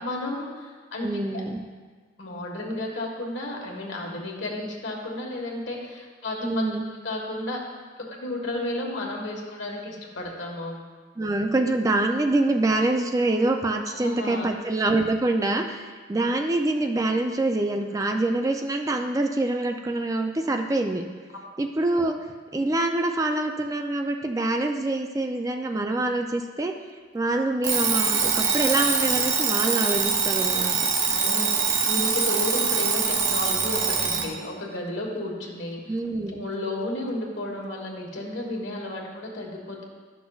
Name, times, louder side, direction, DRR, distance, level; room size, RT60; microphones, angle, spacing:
voice 1, 0.0-1.4 2.2-7.6 8.1-10.8 13.9-14.5 21.9-22.0 31.0-31.5 31.8-35.8 36.3-39.8, left 1 dB, 75° left, -1 dB, 1.4 m, -32 dB
voice 2, 1.0-1.6 6.4-6.9 11.2-21.0 21.6-22.2 22.5-26.7 27.1-30.9 35.9-36.5, right 2 dB, 15° right, 4 dB, 0.3 m, -25 dB
Alarm, 27.6-34.3, right 6 dB, 60° right, 0.7 m, -24 dB
12.0 x 6.0 x 2.3 m, 1.5 s
head